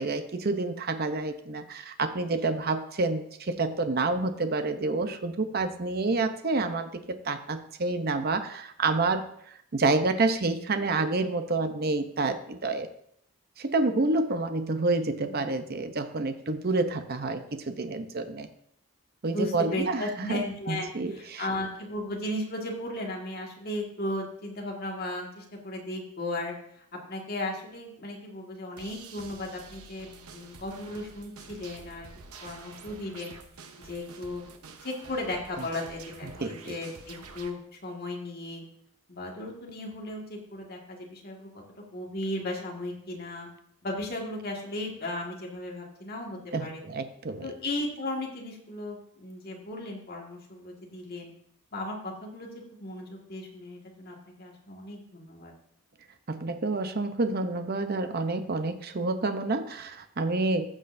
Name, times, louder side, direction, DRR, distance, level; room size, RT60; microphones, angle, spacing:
voice 1, 0.0-9.2 9.7-12.9 13.6-18.5 19.2-21.5 36.2-36.7 46.5-47.5 56.3-60.7, right 3 dB, 45° right, 8 dB, 0.7 m, -28 dB
voice 2, 19.3-30.1 30.3-32.1 32.4-33.3 33.8-34.5 34.8-38.6 39.1-41.5 41.9-43.5 43.8-46.8 47.4-51.3 51.7-55.5, left 1 dB, 45° left, -1 dB, 1.8 m, -36 dB
sound 1, 28.8-37.5, right 4 dB, 90° right, 0.9 m, -48 dB
14.5 x 6.3 x 2.6 m, 0.69 s
head